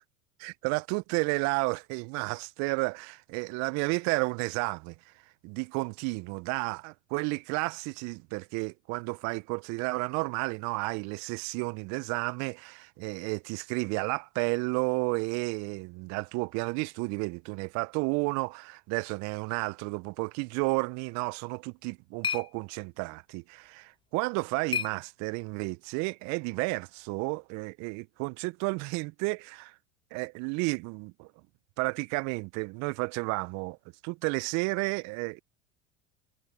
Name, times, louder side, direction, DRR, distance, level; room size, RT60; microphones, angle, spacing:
voice 1, 0.4-4.9 5.4-29.7 30.1-31.3 31.8-33.8 34.0-35.4, right 30 dB, 55° right, 0.7 m, -32 dB
sound 1, 21.5-25.7, left 6 dB, 15° left, 0.9 m, -39 dB
hypercardioid pair, 75°, 34 cm